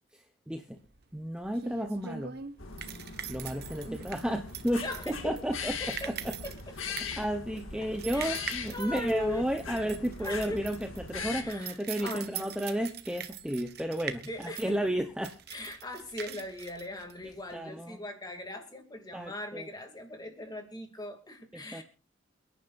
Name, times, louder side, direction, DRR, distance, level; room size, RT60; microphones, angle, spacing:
voice 1, 0.5-0.8 1.1-2.3 3.3-4.8 5.2-5.7 7.2-10.8 11.1-15.3 17.5-18.0 19.1-19.7 21.7-21.8, equal, 5° right, 4 dB, 0.8 m, -32 dB
sound 1, 0.9-17.6, right 8 dB, 50° right, 1.2 m, -43 dB
sound 2, 2.6-11.4, left 5 dB, 90° left, 2.0 m, -40 dB
voice 2, 4.8-5.4 5.8-6.2 6.4-7.0 7.8-9.9 10.2-10.7 11.4-12.5 14.3-14.8 15.5-21.8, left 1 dB, 20° left, 4 dB, 2.6 m, -40 dB
28.5 x 10.5 x 2.6 m, 0.33 s
head